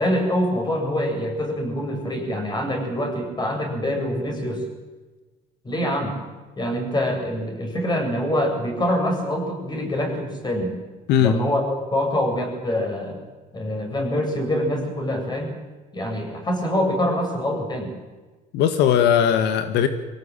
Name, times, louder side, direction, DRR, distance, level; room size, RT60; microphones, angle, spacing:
voice 1, 0.0-4.6 5.6-6.1 6.6-10.7 11.2-13.2 13.5-15.6 15.9-17.9, left 1 dB, 25° left, 2 dB, 7.7 m, -25 dB
voice 2, 18.5-19.9, left 9 dB, 85° left, 9 dB, 1.7 m, -18 dB
24.5 x 17.0 x 9.0 m, 1.3 s
cardioid pair, 110°, 17 cm